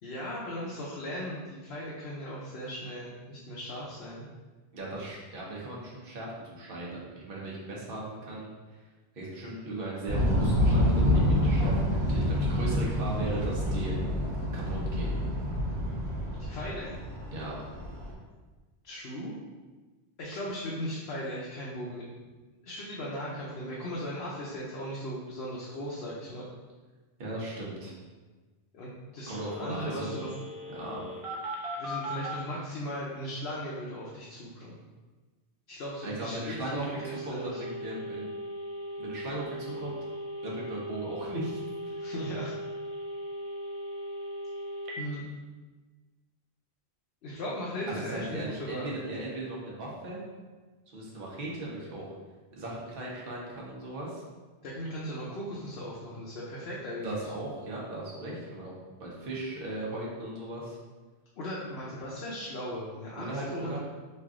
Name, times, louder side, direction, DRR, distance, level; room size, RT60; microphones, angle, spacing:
voice 1, 0.0-4.3 16.4-16.9 18.8-19.3 20.2-22.0 22.6-26.4 28.7-30.4 31.8-34.8 35.7-37.6 42.0-42.5 45.0-45.2 47.2-48.9 54.6-57.2 61.4-63.8, equal, 70° left, -6 dB, 0.8 m, -37 dB
voice 2, 4.7-8.5 9.1-14.0 14.5-15.1 17.3-17.6 27.2-27.9 29.3-30.2 30.7-31.0 36.0-38.2 39.0-40.0 40.4-42.0 47.9-50.2 50.9-52.1 52.5-54.2 57.0-58.7 59.0-60.8 63.2-63.8, right 1 dB, 60° right, -4 dB, 1.0 m, -37 dB
sound 1, 10.1-18.1, left 1 dB, 80° right, 1.1 m, -27 dB
Telephone, 29.3-32.4 36.8-45.0, equal, 45° right, 0.5 m, -38 dB
3.1 x 2.5 x 3.5 m, 1.3 s
omnidirectional pair, 1.1 m